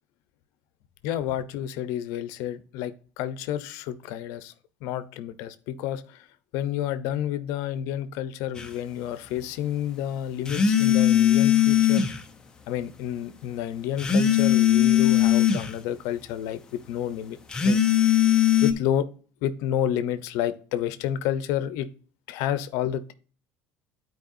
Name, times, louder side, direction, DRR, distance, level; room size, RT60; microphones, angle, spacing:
voice 1, 1.0-4.5 4.8-6.2 6.5-12.1 12.7-17.4 17.6-17.8 18.6-19.1 19.4-21.9 22.3-23.1, left 11 dB, 70° left, 13 dB, 0.8 m, -30 dB
sound 1, 8.5-8.7 10.5-12.2 14.0-15.7 17.5-18.7, left 10 dB, 15° left, 0.8 m, -20 dB
12.0 x 4.6 x 2.7 m, 0.40 s
cardioid pair, 160°, 5 cm